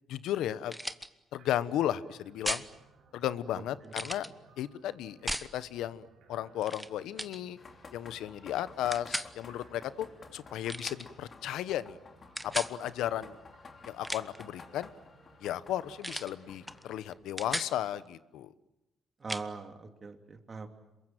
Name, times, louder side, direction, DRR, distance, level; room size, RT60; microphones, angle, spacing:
voice 1, 0.1-0.7 1.3-2.6 3.1-4.3 4.6-7.6 7.9-10.1 10.3-12.0 12.4-13.4 13.9-14.9 15.4-18.5, left 11 dB, 85° left, 16 dB, 1.0 m, -34 dB
sound 1, 0.7-1.1 2.4-2.7 3.9-4.3 5.3-5.5 6.6-6.9 7.2-7.4 8.9-9.3 10.7-11.1 12.4-12.7 13.9-14.4 16.0-16.3 16.7-16.8 17.1-17.7 19.3-19.5, equal, ahead, 1.2 m, -36 dB
sound 2, 1.4-17.6, right 4 dB, 80° right, 4.6 m, -62 dB
sound 3, 7.6-17.0, left 4 dB, 40° left, 3.1 m, -53 dB
voice 2, 19.2-20.7, right 4 dB, 35° right, 6 dB, 3.1 m, -42 dB
27.0 x 23.0 x 9.1 m, 0.94 s
cardioid pair, 90°, 0 cm